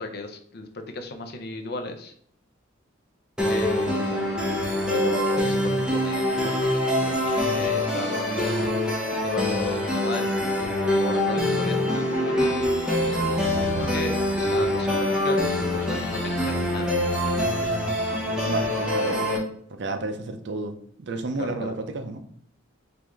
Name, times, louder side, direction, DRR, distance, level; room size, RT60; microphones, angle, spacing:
voice 1, 0.0-2.1 3.5-4.3 4.9-8.7 9.2-12.6 13.7-14.1 14.5-16.9 19.0-19.2 21.4-21.7, left 2 dB, 55° left, 6 dB, 0.6 m, -34 dB
sound 1, 3.4-19.4, left 1 dB, 5° right, 0.9 m, -24 dB
voice 2, 18.5-19.3 19.7-22.2, right 3 dB, 60° right, 7 dB, 0.5 m, -32 dB
4.6 x 2.5 x 3.4 m, 0.62 s
head